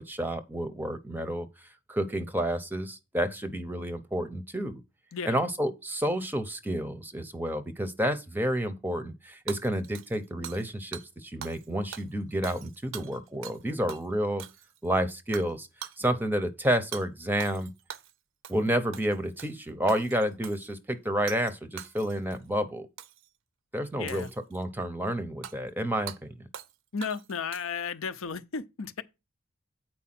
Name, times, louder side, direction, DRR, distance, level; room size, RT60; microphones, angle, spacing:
voice 1, 0.0-1.5 1.9-4.8 5.3-14.4 14.8-17.7 18.5-22.9 23.7-26.5, equal, 10° right, 0.6 m, -30 dB
Hammer / Shatter, 9.5-10.7 10.9-11.1 11.4-11.7 11.9-13.6 13.9-14.0 14.4-14.9 15.3-15.5 15.8-16.0 16.9-17.1 17.4-18.1 18.4-18.7 18.9-19.6 19.9-20.7 21.3-21.5 21.8-22.4 23.0-23.3 24.1-24.6 25.4-25.6 26.1-26.2 26.5-26.7 27.0-27.9, right 9 dB, 65° right, 0.5 m, -43 dB
voice 2, 24.0-24.3 26.9-29.0, left 5 dB, 70° left, 0.6 m, -34 dB
8.5 x 4.6 x 5.8 m
head